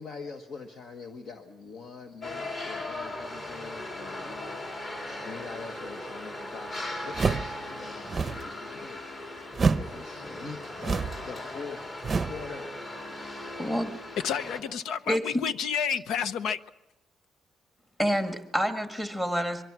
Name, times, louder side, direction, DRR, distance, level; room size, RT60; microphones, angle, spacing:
voice 1, 0.0-4.6 5.2-9.0 9.8-11.9 12.2-12.8, left 4 dB, 50° left, 1.4 m, -43 dB
sound 1, 2.2-14.6, left 1 dB, 30° left, 3.7 m, -38 dB
sound 2, 7.1-7.6 8.0-8.5 9.5-10.0 10.8-11.3 12.0-12.5, right 4 dB, 25° right, 0.7 m, -27 dB
voice 2, 13.6-13.9 15.1-15.4 18.0-19.6, equal, 10° left, 1.8 m, -28 dB
voice 3, 14.2-16.6, left 7 dB, 75° left, 0.9 m, -30 dB
23.5 x 23.0 x 6.1 m
cardioid pair, 155°, 0 cm